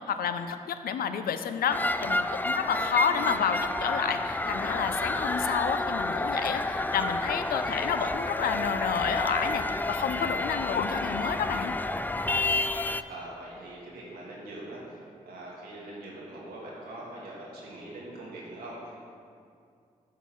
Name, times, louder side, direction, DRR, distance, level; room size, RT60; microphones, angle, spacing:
voice 1, 0.0-11.7, left 7 dB, 80° left, 9 dB, 0.4 m, -30 dB
sound 1, 1.7-13.0, left 2 dB, 10° left, 0.3 m, -30 dB
voice 2, 3.1-3.4 13.1-15.0 15.2-19.1, right 1 dB, 90° right, -5 dB, 1.7 m, -42 dB
8.1 x 3.8 x 6.1 m, 2.4 s
supercardioid pair, 45°, 15 cm